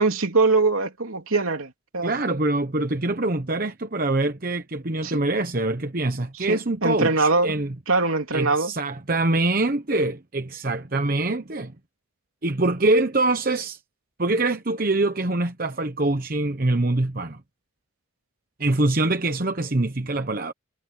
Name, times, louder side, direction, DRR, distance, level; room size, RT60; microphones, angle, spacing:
voice 1, 0.0-2.1 5.0-5.2 6.4-7.6 7.9-8.7, right 3 dB, 90° right, 3.1 m, -22 dB
voice 2, 2.0-7.7 8.3-11.7 12.4-13.8 14.2-17.4 18.6-20.5, right 2 dB, 45° right, 1.0 m, -24 dB
head